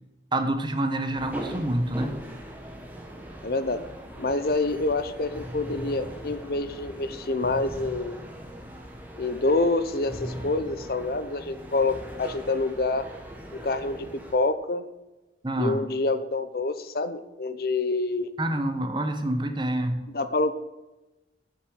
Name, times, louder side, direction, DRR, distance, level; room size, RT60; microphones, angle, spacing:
voice 1, 0.3-2.1 15.4-15.8 18.4-20.0, right 1 dB, 25° right, 6 dB, 1.1 m, -27 dB
sound 1, 1.1-14.3, right 1 dB, 10° right, 1.4 m, -40 dB
voice 2, 3.4-3.8 4.2-8.2 9.2-13.1 13.6-14.1 14.3-14.8 15.6-18.3 20.1-20.5, left 2 dB, 55° left, 11 dB, 0.7 m, -27 dB
8.0 x 6.8 x 8.0 m, 1.0 s
head